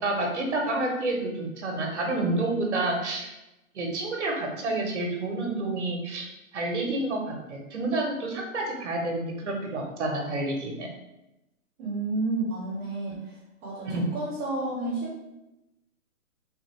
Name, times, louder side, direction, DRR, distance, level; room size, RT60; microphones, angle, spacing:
voice 1, 0.0-3.3 3.7-6.3 6.5-7.2 7.5-10.9 13.9-14.1, right 2 dB, 50° right, 1 dB, 0.9 m, -29 dB
voice 2, 11.8-13.3 13.6-15.2, right 2 dB, 5° right, -14 dB, 0.6 m, -31 dB
3.5 x 2.5 x 3.1 m, 0.94 s
hypercardioid pair, 160°, 43 cm